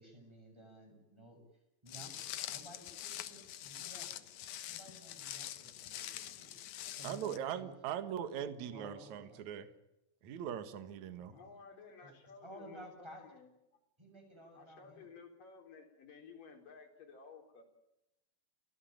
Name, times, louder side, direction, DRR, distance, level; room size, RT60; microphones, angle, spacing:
voice 1, 0.0-1.4 1.8-4.2 4.7-6.6 7.0-8.0 8.6-9.5 11.2-11.6 12.0-12.1 12.4-13.2 14.0-15.1, equal, 5° right, 4 dB, 7.1 m, -55 dB
Walk footsteps, 1.9-7.4, left 12 dB, 75° left, 1.8 m, -45 dB
voice 2, 7.0-9.7 10.2-11.3, right 9 dB, 55° right, 11 dB, 2.4 m, -40 dB
voice 3, 11.3-13.5 14.5-17.6, left 5 dB, 50° left, 3 dB, 5.4 m, -55 dB
30.0 x 16.5 x 9.1 m, 0.90 s
omnidirectional pair, 5.0 m